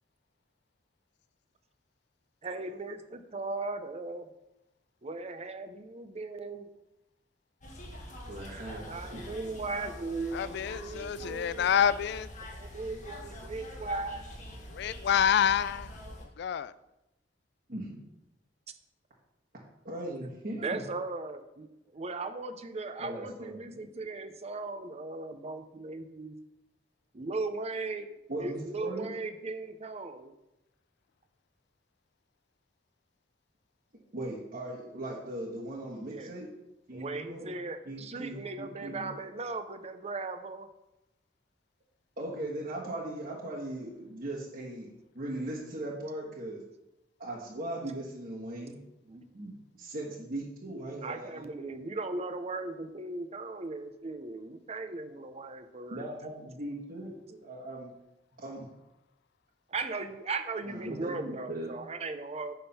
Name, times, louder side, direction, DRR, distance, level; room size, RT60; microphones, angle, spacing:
voice 1, 2.4-4.3 5.0-6.7 8.9-11.9 12.6-14.3 20.6-26.4 27.1-28.1 28.4-30.3 35.9-36.4 36.9-40.7 49.1-49.2 51.0-56.1 59.7-62.5, right 3 dB, 35° right, 9 dB, 0.6 m, -38 dB
sound 1, 7.6-16.2, left 1 dB, 45° left, 1.4 m, -45 dB
voice 2, 8.3-9.3 17.7-17.9 19.8-20.8 23.0-23.6 28.3-29.1 34.1-36.5 36.9-37.5 37.8-39.1 42.2-46.6 47.2-48.8 49.3-51.5 55.9-57.9 58.4-58.7 60.6-61.7, right 1 dB, 50° right, -6 dB, 1.4 m, -39 dB
voice 3, 10.3-12.3 14.7-15.9 16.2-16.7, left 8 dB, 65° left, 17 dB, 0.3 m, -27 dB
9.7 x 3.7 x 5.7 m, 0.93 s
head